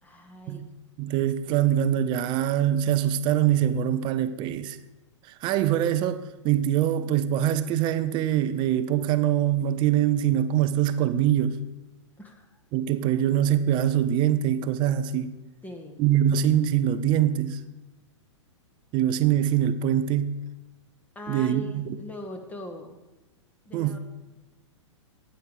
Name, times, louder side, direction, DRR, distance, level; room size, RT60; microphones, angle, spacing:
voice 1, 0.0-0.6 12.2-12.6 15.6-16.0 21.1-23.0 23.6-24.0, left 1 dB, 10° left, 1.6 m, -41 dB
voice 2, 1.0-4.8 5.2-11.6 12.7-15.4 16.0-17.6 18.9-20.4 21.3-22.0 23.7-24.0, right 10 dB, 30° right, 0.6 m, -24 dB
12.0 x 9.1 x 4.9 m
figure-of-eight pair, 110°, 16 cm